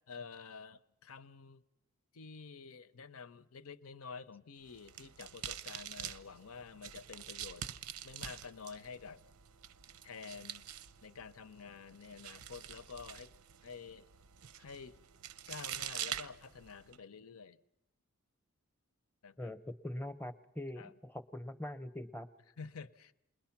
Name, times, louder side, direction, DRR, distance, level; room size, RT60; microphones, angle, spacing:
voice 1, 0.1-1.6 2.1-7.7 8.0-9.2 10.0-10.7 11.0-13.3 13.6-14.1 14.6-15.0 15.5-17.6 19.2-19.5 20.8-20.9 22.6-23.1, left 5 dB, 75° left, 0.7 m, -49 dB
sound 1, 4.6-17.0, right 10 dB, 90° right, 0.7 m, -46 dB
voice 2, 19.4-22.3, left 1 dB, 10° left, 0.7 m, -43 dB
28.5 x 21.0 x 5.9 m
head